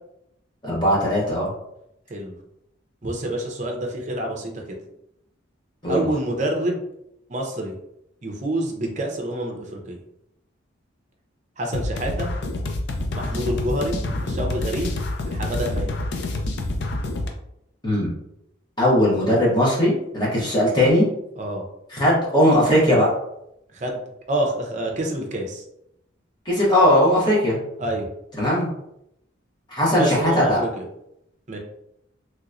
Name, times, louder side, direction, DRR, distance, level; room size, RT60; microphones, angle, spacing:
voice 1, 0.6-1.5 5.8-6.1 17.8-18.1 18.8-21.1 21.9-23.1 26.4-27.6 28.4-28.7 29.7-30.6, equal, 20° left, -6 dB, 1.1 m, -19 dB
voice 2, 3.0-4.6 5.9-6.8 7.3-7.7 8.2-10.0 11.6-12.3 13.1-14.9 15.2-16.0 21.4-21.7 23.7-24.0 24.3-25.6 27.8-28.1 30.0-30.8 31.5-31.6, right 1 dB, 35° right, 1 dB, 0.6 m, -27 dB
sound 1, 11.7-17.3, left 2 dB, 60° left, 0.4 m, -27 dB
3.2 x 3.0 x 2.5 m, 0.79 s
head